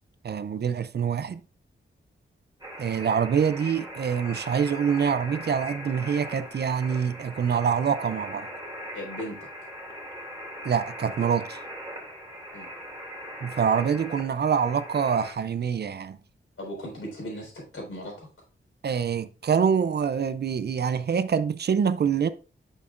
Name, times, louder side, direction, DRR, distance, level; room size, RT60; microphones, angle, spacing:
voice 1, 0.2-1.4 2.8-8.5 10.6-11.6 13.4-16.2 18.8-22.3, right 7 dB, 50° right, 0.4 m, -25 dB
sound 1, 2.6-15.3, equal, 15° right, 2.5 m, -40 dB
voice 2, 8.9-9.5 12.5-12.7 16.6-18.3, equal, 85° left, 4.0 m, -37 dB
8.5 x 6.5 x 2.4 m
wide cardioid pair, 135°, 21 cm